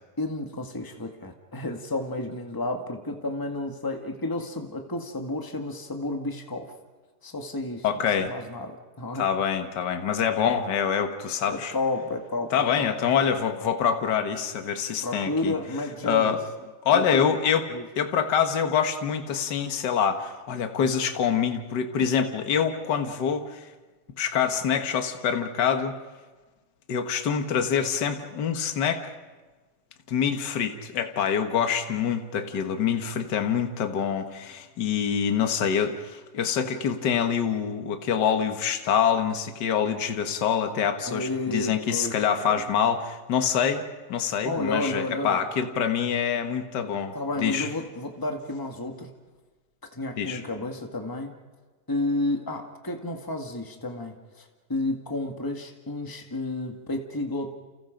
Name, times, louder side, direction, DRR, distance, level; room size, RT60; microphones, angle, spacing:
voice 1, 0.2-6.7 7.2-7.8 8.2-9.3 11.4-12.9 15.0-16.4 16.9-17.2 17.7-17.8 41.1-42.6 44.4-45.4 47.1-49.1 49.8-51.3 51.9-57.5, left 2 dB, 25° left, 3 dB, 0.4 m, -31 dB
voice 2, 7.8-8.3 9.1-11.7 12.5-15.5 16.0-16.4 16.8-17.6 17.9-23.6 24.2-26.0 26.9-29.1 30.1-47.7 50.2-50.4, left 7 dB, 50° left, 6 dB, 1.4 m, -25 dB
30.0 x 29.5 x 5.2 m, 1.3 s
omnidirectional pair, 3.9 m